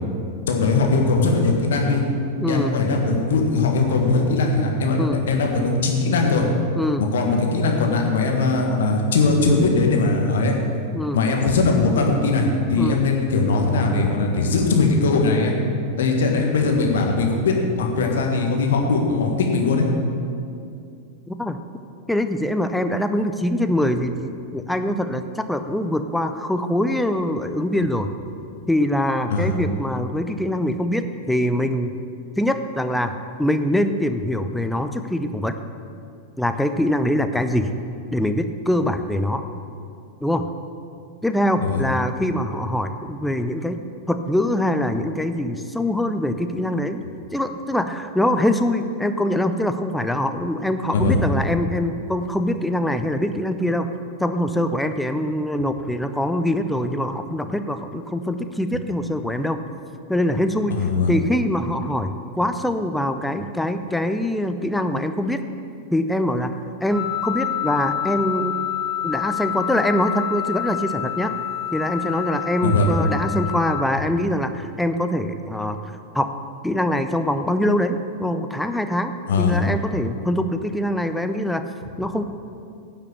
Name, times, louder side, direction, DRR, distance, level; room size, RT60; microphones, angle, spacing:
voice 1, 0.5-2.0 2.5-6.4 7.0-10.5 11.1-15.5 16.0-19.9 29.3-29.5 41.6-41.8 50.9-51.2 60.7-61.1 72.6-72.9 79.3-79.6, left 3 dB, 60° left, 1 dB, 1.6 m, -20 dB
voice 2, 2.4-2.7 5.0-5.2 6.8-7.1 10.9-11.2 12.8-13.0 21.3-21.6 22.1-28.1 28.7-31.9 32.4-35.5 36.4-37.7 38.1-39.4 40.2-40.4 41.2-43.8 44.1-47.0 47.3-53.9 54.2-59.6 60.1-60.8 61.1-65.4 65.9-68.5 69.0-71.3 71.7-75.8 76.1-76.3 76.6-81.6 82.0-82.2, left 1 dB, 5° left, 8 dB, 0.6 m, -23 dB
Wind instrument woodwind instrument, 66.9-73.8, left 11 dB, 20° right, 2.5 m, -28 dB
10.0 x 5.9 x 7.1 m, 2.4 s
figure-of-eight pair, 90°, 0 cm